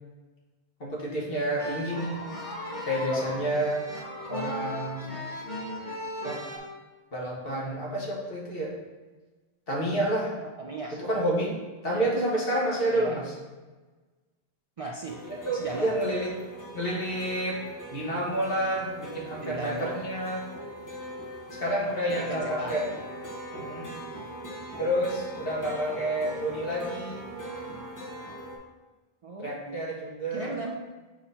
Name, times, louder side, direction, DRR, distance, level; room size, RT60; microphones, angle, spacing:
voice 1, 0.8-2.2 2.8-3.8 4.3-5.2 6.2-6.4 7.1-8.7 9.7-10.3 11.0-11.5 11.8-13.2 15.3-16.3 16.7-17.6 17.9-20.5 21.6-22.8 23.5-23.9 24.8-27.3 29.4-30.5, right 1 dB, 65° left, -4 dB, 1.6 m, -29 dB
sound 1, 1.6-6.6, left 1 dB, 45° left, 1.3 m, -37 dB
voice 2, 10.6-11.0 11.9-12.1 12.9-13.2 14.8-15.2 15.5-15.9 19.1-20.1 22.1-23.0 29.2-29.9 30.3-30.7, right 2 dB, 50° right, 0 dB, 0.4 m, -37 dB
sound 2, 15.1-28.6, right 1 dB, 20° left, 0.9 m, -40 dB
6.0 x 2.9 x 5.6 m, 1.3 s
omnidirectional pair, 1.0 m